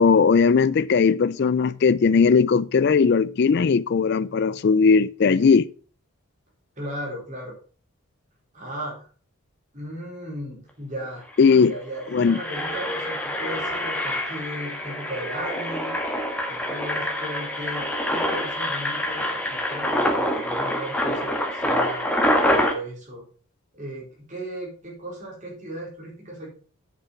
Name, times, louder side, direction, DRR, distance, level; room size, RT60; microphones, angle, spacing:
voice 1, 0.0-5.7 11.4-11.7 12.1-12.4, left 5 dB, 50° left, 0.4 m, -18 dB
voice 2, 6.8-7.6 8.5-9.1 9.7-11.3 11.6-15.9 16.5-22.1 22.5-23.3 23.7-26.5, right 1 dB, 35° right, 4.4 m, -36 dB
Engine, 11.0-11.1 11.3-11.6 12.0-22.7, left 1 dB, 5° left, 1.6 m, -26 dB
8.3 x 6.8 x 5.8 m
head